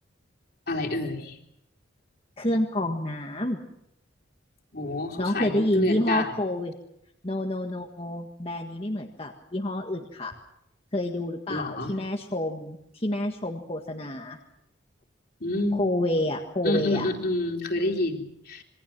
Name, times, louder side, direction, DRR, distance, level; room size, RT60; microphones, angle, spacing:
voice 1, 0.7-1.4 4.7-6.3 11.5-12.0 15.4-15.9 16.6-18.6, left 2 dB, 50° left, 2 dB, 3.6 m, -28 dB
voice 2, 2.4-3.6 5.2-6.7 7.2-10.4 10.9-14.4 15.7-17.1, left 1 dB, 30° left, 0 dB, 1.7 m, -28 dB
27.5 x 23.0 x 6.1 m, 0.78 s
head